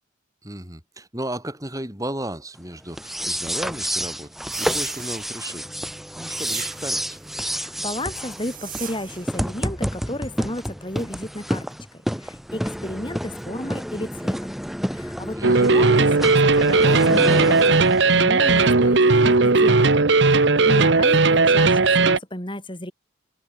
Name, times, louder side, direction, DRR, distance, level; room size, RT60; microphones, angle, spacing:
voice 1, 0.4-5.7 6.1-7.2 15.3-15.6, right 1 dB, 15° right, 8.0 m, -34 dB
sound 1, 2.9-18.2, equal, ahead, 2.3 m, -29 dB
sound 2, 4.5-5.7 6.3-7.2 8.2-9.4, right 11 dB, 45° right, 6.2 m, -39 dB
voice 2, 7.5-11.7 12.2-14.6 14.9-22.9, left 1 dB, 25° left, 6.5 m, -33 dB
sound 3, 15.4-22.2, right 3 dB, 60° right, 1.0 m, -17 dB
head